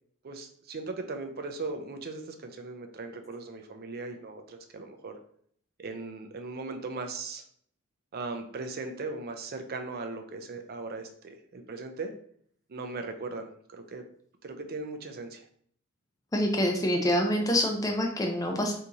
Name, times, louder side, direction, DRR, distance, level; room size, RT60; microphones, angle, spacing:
voice 1, 0.2-5.2 5.8-7.4 8.1-12.1 12.7-14.0 14.4-15.4, right 3 dB, 45° right, 6 dB, 0.4 m, -38 dB
voice 2, 16.3-18.7, equal, 15° left, 2 dB, 0.5 m, -26 dB
2.9 x 2.6 x 3.6 m, 0.63 s
head